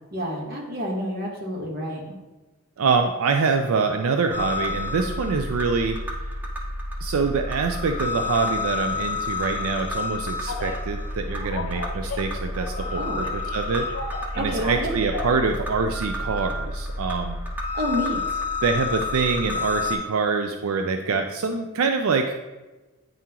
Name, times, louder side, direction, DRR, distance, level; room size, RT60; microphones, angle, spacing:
voice 1, 0.1-2.1 13.0-13.2 14.3-14.9 17.7-18.2, equal, 45° right, -1 dB, 1.2 m, -29 dB
voice 2, 2.8-6.0 7.0-13.9 14.4-17.4 18.6-22.4, right 4 dB, 85° right, 5 dB, 0.4 m, -25 dB
sound 1, 4.3-20.0, left 2 dB, 10° right, 0.7 m, -30 dB
Telephone, 10.4-10.8 11.3-12.9 13.2-15.4 15.9-16.6, left 2 dB, 65° left, 0.8 m, -35 dB
9.2 x 3.7 x 2.9 m, 1.1 s
head